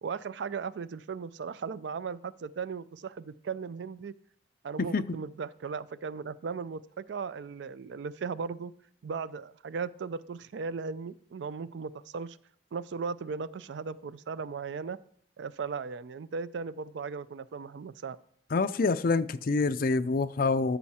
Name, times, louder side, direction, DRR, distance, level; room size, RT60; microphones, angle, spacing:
voice 1, 0.0-4.1 4.6-8.7 9.0-12.4 12.7-15.0 15.4-18.2, right 5 dB, 85° right, 0.4 m, -37 dB
voice 2, 18.5-20.8, left 3 dB, 55° left, 0.5 m, -26 dB
13.0 x 5.6 x 4.2 m
head